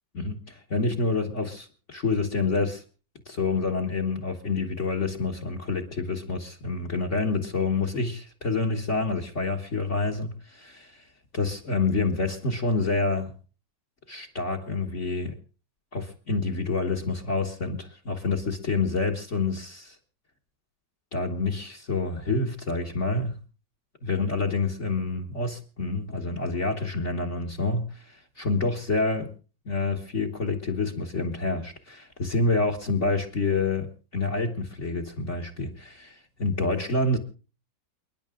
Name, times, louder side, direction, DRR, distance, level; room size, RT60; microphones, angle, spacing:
voice 1, 0.1-2.8 3.3-11.0 11.3-13.3 14.1-15.3 15.9-20.0 21.1-23.4 24.0-29.3 29.7-37.2, left 3 dB, 40° left, 5 dB, 1.8 m, -28 dB
29.0 x 10.5 x 3.8 m, 0.37 s
omnidirectional pair, 2.0 m